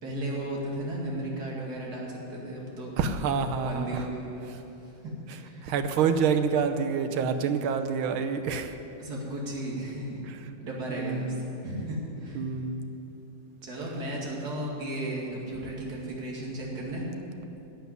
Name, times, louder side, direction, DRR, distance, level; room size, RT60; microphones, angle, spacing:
voice 1, 0.0-2.9 3.5-5.7 9.0-10.2 10.6-11.4 11.6-12.5 13.6-17.0, right 1 dB, 50° right, -3 dB, 2.8 m, -35 dB
voice 2, 3.0-4.1 5.6-8.8 10.3-10.4 10.9-11.6 12.3-12.9, right 6 dB, 85° right, 8 dB, 1.7 m, -27 dB
11.0 x 8.2 x 9.5 m, 2.9 s
omnidirectional pair, 2.2 m